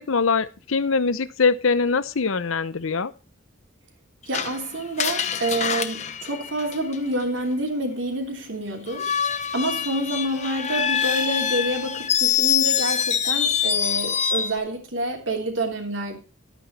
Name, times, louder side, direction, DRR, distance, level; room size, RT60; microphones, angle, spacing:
voice 1, 0.0-3.1, left 4 dB, 85° left, 0.8 m, -23 dB
Screech, 4.3-7.2 8.9-14.6, left 8 dB, 35° left, 0.9 m, -25 dB
voice 2, 4.3-9.1 9.5-16.2, right 1 dB, 70° right, 3.2 m, -28 dB
12.5 x 9.2 x 4.3 m
head